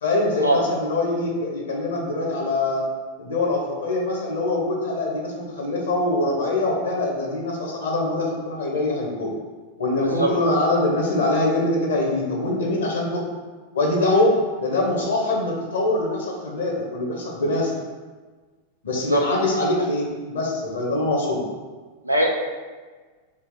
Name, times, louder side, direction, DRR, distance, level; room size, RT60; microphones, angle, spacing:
voice 1, 0.0-2.9 3.2-9.3 9.8-13.2 13.7-17.8 18.8-21.4, left 2 dB, 65° left, 0 dB, 0.8 m, -23 dB
voice 2, 10.0-10.3 18.9-19.2 19.8-19.9 22.0-22.3, right 1 dB, 85° right, 1 dB, 0.4 m, -21 dB
3.3 x 2.4 x 3.7 m, 1.4 s
figure-of-eight pair, 90°, 0 cm